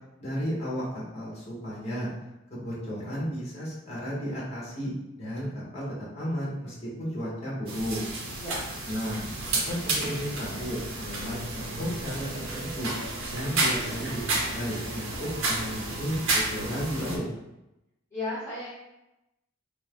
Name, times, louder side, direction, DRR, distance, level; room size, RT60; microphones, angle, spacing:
voice 1, 0.2-2.1 2.5-5.9 6.1-8.0 8.9-12.9 13.3-17.3, equal, 30° left, -6 dB, 1.0 m, -33 dB
sound 1, 7.7-17.2, right 2 dB, 80° right, 0.7 m, -31 dB
voice 2, 18.1-18.7, left 2 dB, 15° left, -12 dB, 1.5 m, -34 dB
2.8 x 2.7 x 3.7 m, 0.92 s
head